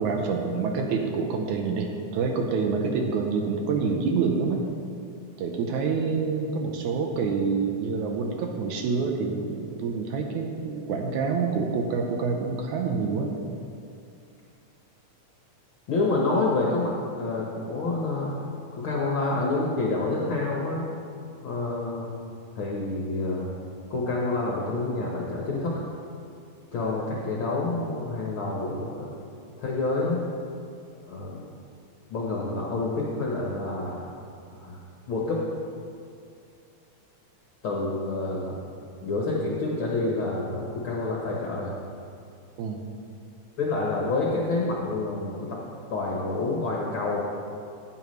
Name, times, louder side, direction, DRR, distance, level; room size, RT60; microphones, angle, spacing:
voice 1, 0.0-4.6 5.4-13.4 42.6-42.8, right 5 dB, 80° right, 2 dB, 2.2 m, -27 dB
voice 2, 15.9-16.9 17.2-18.3 18.7-20.8 21.4-22.1 22.5-23.5 23.9-25.8 26.7-29.1 29.6-30.2 31.1-31.4 32.1-34.0 34.6-34.8 35.1-35.4 37.6-38.6 39.0-41.7 43.6-45.6 45.9-47.2, left 2 dB, 55° left, -3 dB, 1.5 m, -28 dB
15.5 x 8.9 x 3.2 m, 2.4 s
omnidirectional pair, 3.4 m